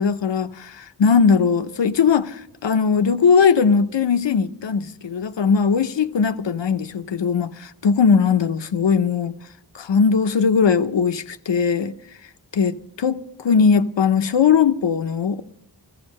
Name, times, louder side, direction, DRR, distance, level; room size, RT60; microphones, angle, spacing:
voice 1, 0.0-9.3 9.7-11.9 12.5-15.4, left 6 dB, 75° left, 0.7 m, -19 dB
15.0 x 14.5 x 5.3 m
wide cardioid pair, 60°, 44 cm